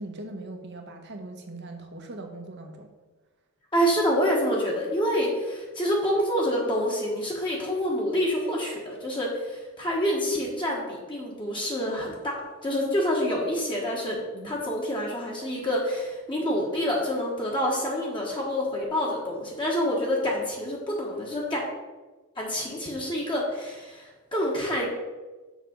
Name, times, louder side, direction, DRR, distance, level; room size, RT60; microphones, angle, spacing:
voice 1, 0.0-2.9 14.3-14.6, right 2 dB, 55° right, 4 dB, 1.2 m, -40 dB
voice 2, 3.7-14.2 14.4-21.6 22.4-24.9, equal, 25° left, -3 dB, 1.4 m, -27 dB
6.6 x 6.0 x 5.2 m, 1.3 s
head